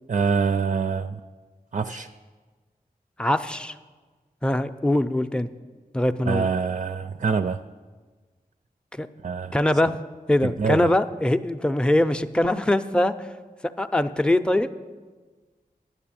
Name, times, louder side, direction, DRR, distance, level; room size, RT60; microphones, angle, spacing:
voice 1, 0.1-1.2 1.7-2.1 6.2-7.6 9.2-9.6 10.4-10.9, right 5 dB, 50° right, 9 dB, 0.4 m, -25 dB
voice 2, 3.2-3.7 4.4-5.5 5.9-6.5 9.0-9.1 9.5-10.0 10.3-13.2 13.8-14.7, left 1 dB, 5° left, 9 dB, 0.5 m, -22 dB
9.0 x 6.8 x 8.8 m, 1.4 s
cardioid pair, 40°, 16 cm